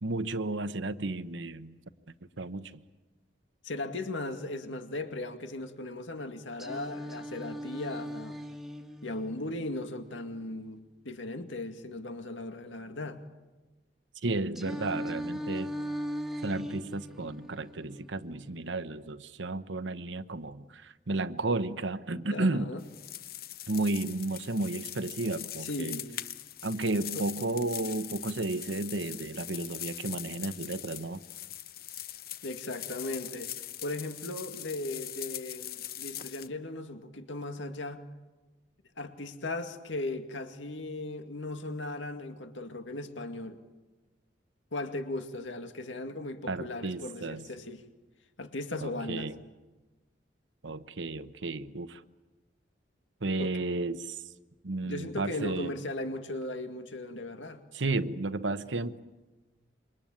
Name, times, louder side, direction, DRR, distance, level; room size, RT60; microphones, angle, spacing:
voice 1, 0.0-1.8 2.4-2.8 14.2-15.7 16.4-22.7 23.7-26.0 26.6-31.2 46.5-47.5 48.8-49.4 50.6-52.0 53.2-54.2 54.6-55.7 57.7-58.9, right 2 dB, 80° right, 1.1 m, -33 dB
voice 2, 3.6-8.4 9.0-13.2 22.3-22.8 25.6-26.2 27.1-27.2 32.4-33.5 33.8-38.0 39.0-43.6 44.7-47.9 48.4-49.3 53.4-53.5 54.8-57.6, left 2 dB, 85° left, 2.2 m, -37 dB
Singing, 6.6-10.6 14.6-18.6, equal, ahead, 1.6 m, -39 dB
sound 1, 22.8-36.5, left 12 dB, 50° left, 0.9 m, -42 dB
27.0 x 24.0 x 8.8 m
head